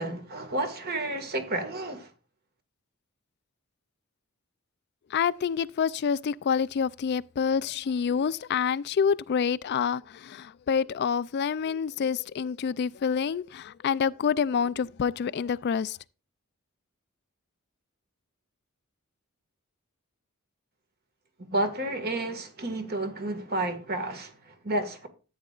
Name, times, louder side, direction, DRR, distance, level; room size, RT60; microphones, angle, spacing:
voice 1, 0.0-2.1 21.4-25.1, right 2 dB, 45° right, 1.7 m, -31 dB
voice 2, 5.1-16.0, left 6 dB, 50° left, 0.3 m, -27 dB
14.0 x 8.7 x 2.4 m
head